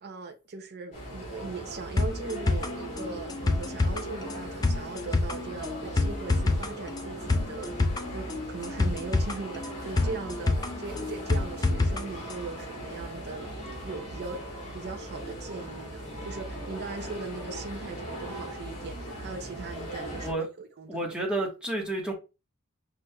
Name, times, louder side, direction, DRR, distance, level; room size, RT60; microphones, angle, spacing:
voice 1, 0.0-7.7 8.1-13.6 13.8-14.4 14.7-21.2, right 4 dB, 45° right, 0.5 m, -39 dB
sound 1, 0.9-20.3, right 1 dB, 30° left, 2.1 m, -39 dB
sound 2, 2.0-12.0 12.3-12.4, left 2 dB, 15° left, 0.3 m, -28 dB
voice 2, 20.9-22.1, right 2 dB, 5° right, 1.2 m, -30 dB
6.1 x 3.2 x 2.2 m
head